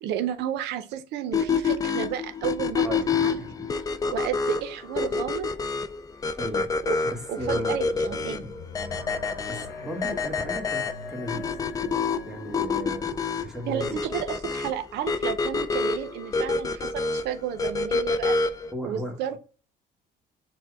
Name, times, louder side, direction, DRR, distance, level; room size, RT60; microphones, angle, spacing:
voice 1, 0.0-3.5 4.1-5.5 6.9-7.0 7.3-8.4 13.7-18.4 18.8-19.4, right 10 dB, 80° right, 0.5 m, -32 dB
sound 1, 1.3-18.7, left 4 dB, 20° left, 0.3 m, -28 dB
voice 2, 2.8-3.7 6.4-6.7 7.1-7.8 8.1-8.5 9.5-14.0 18.7-19.4, equal, 5° right, 1.1 m, -36 dB
sound 2, 7.4-12.6, left 4 dB, 75° left, 1.0 m, -43 dB
4.4 x 2.1 x 4.5 m
cardioid pair, 110°, 17 cm